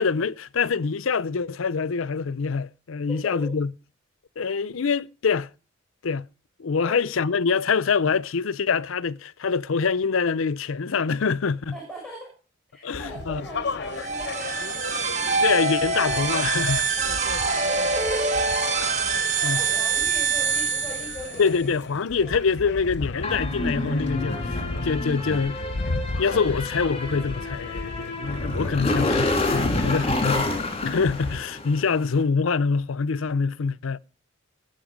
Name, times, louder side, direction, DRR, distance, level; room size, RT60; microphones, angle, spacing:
voice 1, 0.0-3.7 4.4-5.5 6.0-6.3 6.6-11.7 12.8-13.4 15.4-16.9 18.8-19.0 19.4-19.6 21.4-25.6 26.2-30.5 30.8-34.0, left 5 dB, 85° left, 0.6 m, -25 dB
voice 2, 3.1-3.5 6.8-7.1 11.7-12.3 12.7-15.3 17.0-18.3 19.4-21.7 22.2-22.6, equal, 5° left, 5.4 m, -41 dB
sound 1, 12.9-31.4, left 3 dB, 55° left, 0.8 m, -35 dB
sound 2, 13.9-21.6, right 4 dB, 35° right, 2.0 m, -25 dB
sound 3, 23.2-31.9, left 2 dB, 30° left, 3.1 m, -28 dB
19.0 x 7.9 x 5.1 m
head